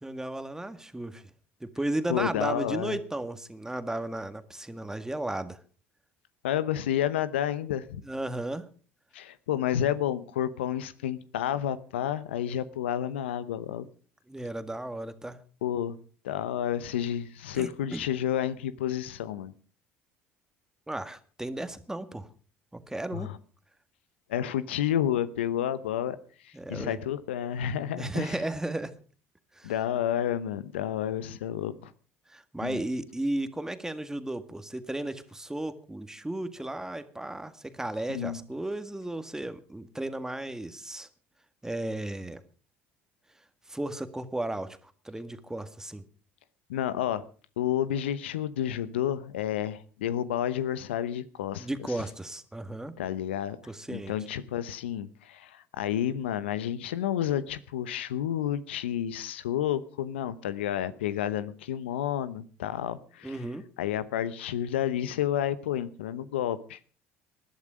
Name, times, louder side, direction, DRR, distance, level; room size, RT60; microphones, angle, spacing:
voice 1, 0.0-1.2 1.6-5.6 8.0-8.7 14.3-15.4 17.5-18.1 20.9-22.3 22.7-23.3 26.5-27.0 28.0-28.9 29.6-29.7 32.3-41.1 41.6-42.4 43.7-46.0 51.5-52.9 53.6-54.1 63.2-63.6, right 1 dB, 10° right, 10 dB, 1.8 m, -34 dB
voice 2, 2.1-3.0 6.4-8.0 9.1-13.9 15.6-16.0 16.2-19.5 23.1-23.4 24.3-26.2 26.4-28.4 29.6-31.9 32.6-32.8 38.1-38.4 46.7-47.2 47.6-51.7 53.0-53.6 53.9-63.4 63.8-66.8, left 10 dB, 85° left, 15 dB, 0.9 m, -30 dB
20.0 x 11.5 x 5.1 m, 0.39 s
hypercardioid pair, 65°, 6 cm